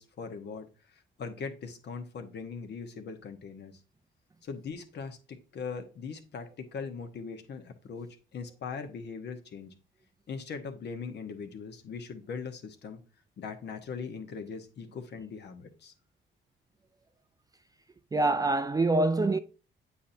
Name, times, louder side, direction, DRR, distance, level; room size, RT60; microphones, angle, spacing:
voice 1, 0.0-3.8 4.4-9.7 10.3-13.0 13.4-15.9, left 5 dB, 60° left, 1.1 m, -40 dB
voice 2, 18.1-19.4, right 2 dB, 20° right, 0.4 m, -25 dB
8.4 x 4.3 x 2.7 m
cardioid pair, 90°, 20 cm